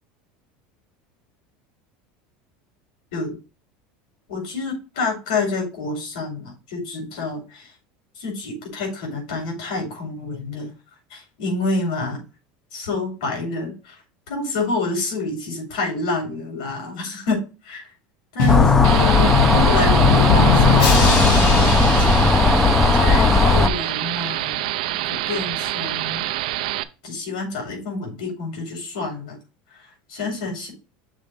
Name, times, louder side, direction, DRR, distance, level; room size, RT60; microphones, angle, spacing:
voice 1, 4.3-7.7 8.1-10.7 11.1-12.2 12.7-14.0 14.3-17.4 17.6-17.9 18.3-22.2 22.9-24.7 24.9-26.2 27.0-29.4 29.8-30.7, left 3 dB, 80° left, 2 dB, 4.7 m, -28 dB
Drum, 18.4-23.2, left 5 dB, 65° left, 2.6 m, -21 dB
sound 1, 18.5-23.7, left 3 dB, 10° left, 0.5 m, -16 dB
sound 2, 18.8-26.8, right 15 dB, 75° right, 0.6 m, -26 dB
6.5 x 3.9 x 5.1 m, 0.30 s
cardioid pair, 175°, 4 cm